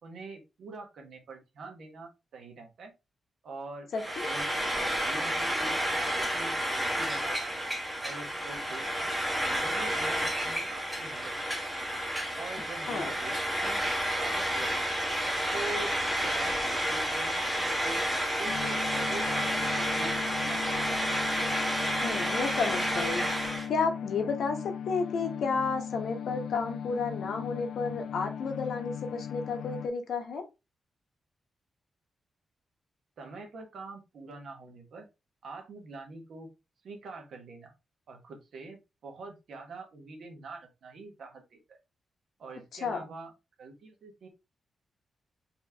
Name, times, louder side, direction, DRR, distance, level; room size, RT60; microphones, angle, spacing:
voice 1, 0.0-2.9 3.4-5.7 6.2-7.5 8.0-9.1 9.4-11.5 12.4-13.8 14.1-14.9 15.5-18.0 18.4-21.1 33.2-35.1 35.4-36.5 36.8-37.7 38.1-41.8 42.4-43.3 43.6-44.3, right 3 dB, 65° right, 3 dB, 1.3 m, -44 dB
voice 2, 3.9-4.3 12.9-13.1 22.0-24.6 24.9-30.4 42.8-43.1, left 4 dB, 65° left, 5 dB, 1.0 m, -32 dB
Frying (food), 3.9-23.7, equal, 5° right, 1.0 m, -30 dB
sound 1, 18.4-29.9, left 8 dB, 85° left, 0.6 m, -38 dB
4.4 x 2.9 x 3.4 m, 0.25 s
wide cardioid pair, 175°, 0 cm